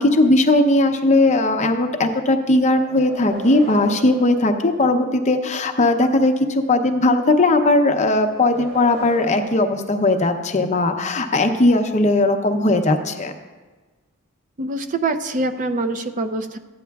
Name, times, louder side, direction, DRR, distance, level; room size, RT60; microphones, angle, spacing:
voice 1, 0.0-13.3, left 2 dB, 35° left, 6 dB, 0.6 m, -18 dB
sound 1, 2.7-5.4 8.0-10.7, equal, 65° right, 3.0 m, -38 dB
voice 2, 14.6-16.6, right 2 dB, 35° right, 7 dB, 0.5 m, -24 dB
14.5 x 9.2 x 2.3 m, 1.3 s
head